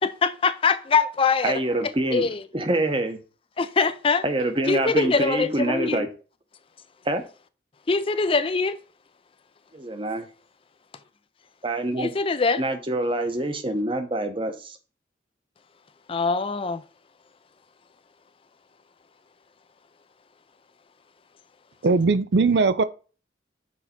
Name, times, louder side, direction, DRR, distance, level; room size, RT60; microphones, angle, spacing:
voice 1, 0.0-1.5 2.1-2.4 3.6-4.2 4.7-6.1 7.9-8.8 12.0-12.6 16.1-16.8, left 4 dB, 30° left, 0.4 m, -23 dB
voice 2, 1.4-2.3 2.5-3.2 4.2-6.1 7.0-7.2 9.7-10.2 11.6-12.1 12.6-14.8, right 1 dB, 30° right, 0.9 m, -26 dB
voice 3, 21.8-22.8, right 4 dB, 65° right, 0.5 m, -19 dB
6.3 x 4.0 x 5.8 m
head